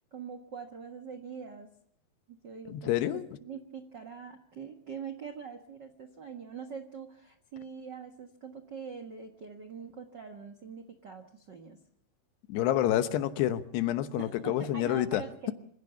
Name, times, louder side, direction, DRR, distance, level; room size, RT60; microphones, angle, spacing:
voice 1, 0.1-1.7 2.3-11.8 14.2-15.5, right 6 dB, 80° right, 5 dB, 0.9 m, -43 dB
voice 2, 2.7-3.3 12.5-15.2, left 12 dB, 85° left, 10 dB, 3.2 m, -28 dB
26.0 x 16.0 x 7.1 m, 0.69 s
omnidirectional pair, 4.7 m